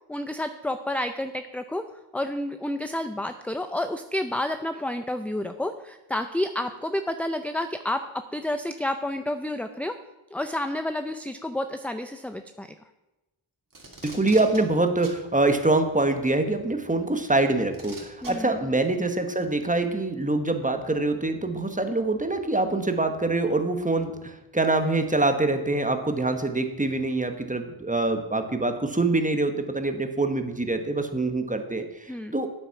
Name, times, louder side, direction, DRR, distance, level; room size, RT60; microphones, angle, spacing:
voice 1, 0.1-1.8 2.1-8.0 8.3-10.0 10.3-12.7 18.2-18.6 32.1-32.3, left 1 dB, 5° left, 8 dB, 0.4 m, -30 dB
Packing tape duct tape, 13.7-14.6 15.0-15.2 16.5-16.6 17.7-18.3 19.4-19.5, right 2 dB, 40° right, 2.7 m, -42 dB
voice 2, 14.0-32.5, right 2 dB, 15° right, 7 dB, 1.1 m, -25 dB
9.2 x 8.2 x 5.8 m, 1.0 s
wide cardioid pair, 90°, 50 cm